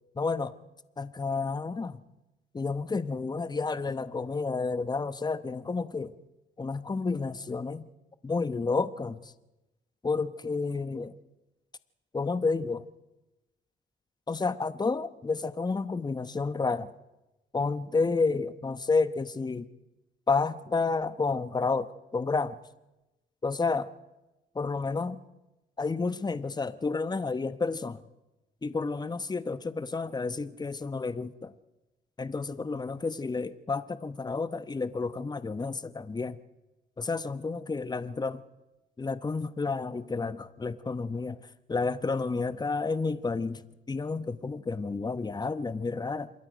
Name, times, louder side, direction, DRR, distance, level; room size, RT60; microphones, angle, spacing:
voice 1, 0.2-0.5 1.0-2.0 2.5-6.1 6.6-7.8 8.2-9.3 10.0-11.1 12.1-12.8 14.3-16.9 17.5-19.7 20.3-22.6 23.4-23.9 24.5-25.2 25.8-28.0 28.6-31.5 32.2-36.4 37.0-38.4 39.0-41.4 41.7-46.3, left 4 dB, 20° left, 14 dB, 0.9 m, -30 dB
27.0 x 21.5 x 5.1 m, 1.0 s
cardioid pair, 90°, 20 cm